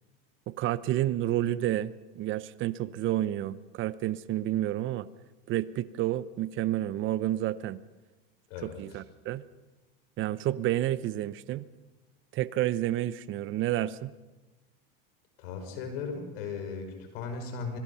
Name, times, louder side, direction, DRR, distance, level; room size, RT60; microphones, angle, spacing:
voice 1, 0.5-5.1 5.5-7.8 8.6-9.4 10.2-11.6 12.3-14.1, right 13 dB, 40° right, 16 dB, 0.9 m, -30 dB
voice 2, 8.5-9.0 15.4-17.8, left 5 dB, 75° left, 6 dB, 5.7 m, -37 dB
25.5 x 22.5 x 5.7 m, 1.1 s
supercardioid pair, 120°, 29 cm